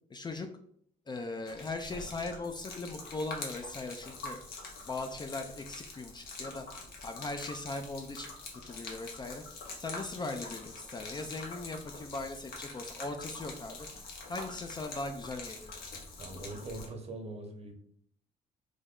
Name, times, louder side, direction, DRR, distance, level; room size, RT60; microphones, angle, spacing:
voice 1, 0.1-0.5 1.1-4.4 4.9-6.6 7.0-8.3 8.6-9.4 9.8-13.9 14.3-15.7, left 2 dB, 25° left, 6 dB, 0.4 m, -39 dB
Gurgling / Liquid, 1.5-16.9, left 3 dB, 70° left, 0.8 m, -45 dB
voice 2, 15.9-17.7, right 2 dB, 40° right, 4 dB, 0.8 m, -43 dB
3.3 x 2.0 x 3.6 m, 0.66 s
cardioid pair, 75°, 16 cm